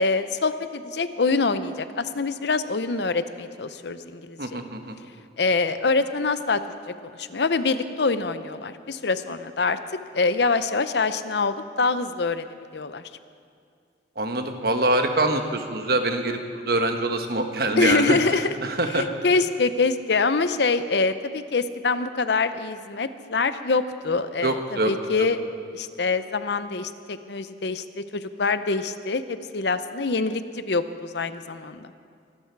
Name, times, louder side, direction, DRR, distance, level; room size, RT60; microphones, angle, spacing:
voice 1, 0.0-4.6 5.4-6.6 7.2-9.8 10.1-12.5 12.7-13.0 17.8-18.5 18.9-25.4 25.7-31.9, left 4 dB, 65° left, 12 dB, 0.7 m, -25 dB
voice 2, 4.4-4.9 14.2-18.2 18.6-19.1 24.4-24.9, right 2 dB, 55° right, 5 dB, 1.3 m, -24 dB
24.5 x 12.0 x 4.7 m, 2.2 s
head